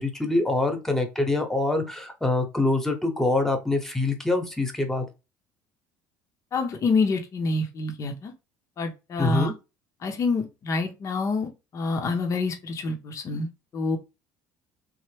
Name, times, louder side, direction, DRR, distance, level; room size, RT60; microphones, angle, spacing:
voice 1, 0.0-5.1 9.2-9.5, left 2 dB, 5° left, 4 dB, 0.9 m, -25 dB
voice 2, 6.5-8.3 8.8-9.5 10.0-14.0, left 3 dB, 40° left, 4 dB, 0.7 m, -27 dB
3.1 x 2.1 x 3.2 m, 0.27 s
supercardioid pair, 90°, 8 cm